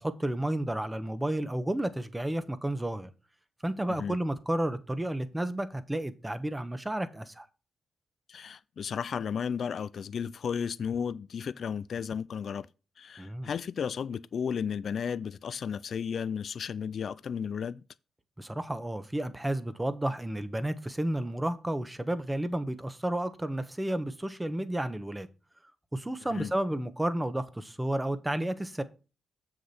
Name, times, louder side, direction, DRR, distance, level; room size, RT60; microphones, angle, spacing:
voice 1, 0.0-3.1 3.6-7.5 13.2-13.5 18.4-25.3 25.9-28.8, right 1 dB, 15° right, 1.3 m, -32 dB
voice 2, 8.3-12.7 13.0-17.8 26.3-26.5, left 7 dB, 65° left, 0.4 m, -34 dB
7.5 x 6.5 x 4.3 m
cardioid pair, 65°, 0 cm